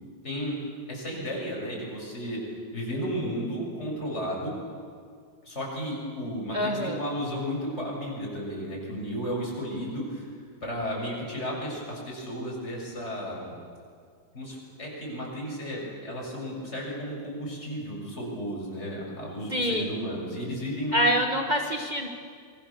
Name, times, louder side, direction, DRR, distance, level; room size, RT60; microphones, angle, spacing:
voice 1, 0.2-0.6 0.9-2.4 2.7-4.5 5.4-10.3 10.6-13.5 14.3-21.1, equal, 20° left, -3 dB, 7.0 m, -33 dB
voice 2, 6.5-7.0 19.5-19.9 20.9-22.1, equal, 65° right, 2 dB, 0.4 m, -25 dB
27.0 x 24.0 x 7.2 m, 2.1 s
omnidirectional pair, 3.5 m